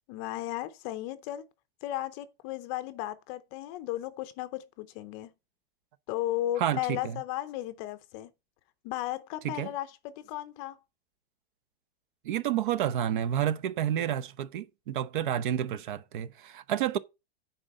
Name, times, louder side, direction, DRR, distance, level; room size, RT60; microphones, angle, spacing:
voice 1, 0.1-1.5 1.8-5.3 6.1-8.3 8.8-10.8, left 14 dB, 25° left, 0.6 m, -35 dB
voice 2, 6.6-7.2 9.4-9.7 12.2-17.0, right 10 dB, 50° right, 0.8 m, -30 dB
9.5 x 3.9 x 6.3 m
supercardioid pair, 165°, 31 cm